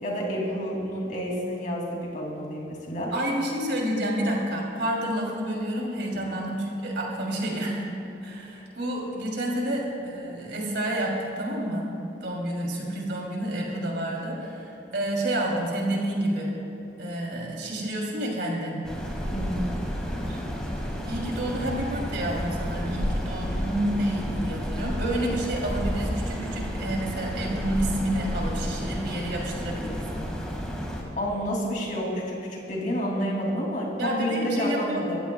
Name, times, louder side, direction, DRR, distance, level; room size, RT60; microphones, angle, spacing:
voice 1, 0.0-3.1 6.1-6.2 19.3-19.6 31.2-35.2, equal, 40° left, -2 dB, 2.8 m, -29 dB
voice 2, 3.1-7.8 8.2-11.9 12.2-16.5 17.0-18.8 20.2-20.4 21.1-30.0 34.0-35.1, right 1 dB, 60° right, -2 dB, 3.1 m, -29 dB
sound 1, 18.8-31.0, equal, 5° left, 1.9 m, -31 dB
23.5 x 15.0 x 2.3 m, 2.9 s
head